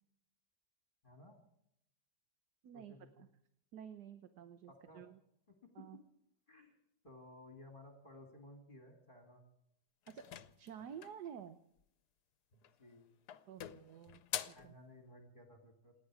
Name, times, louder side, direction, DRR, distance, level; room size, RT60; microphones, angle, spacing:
voice 1, 1.0-1.4 2.7-3.2 4.7-5.0 5.5-5.7 6.5-6.7 7.0-9.4 12.5-13.1 14.5-15.9, left 1 dB, 30° left, 2 dB, 2.6 m, -57 dB
voice 2, 2.6-3.3 3.7-5.2 5.7-6.0 10.1-10.2 10.6-11.6 13.5-14.2 14.5-14.7, right 8 dB, 85° right, 9 dB, 1.5 m, -51 dB
sound 1, 10.1-11.3 12.5-12.9 13.3-14.7, left 10 dB, 80° left, 1.4 m, -45 dB
28.0 x 10.5 x 4.8 m, 0.75 s
omnidirectional pair, 1.7 m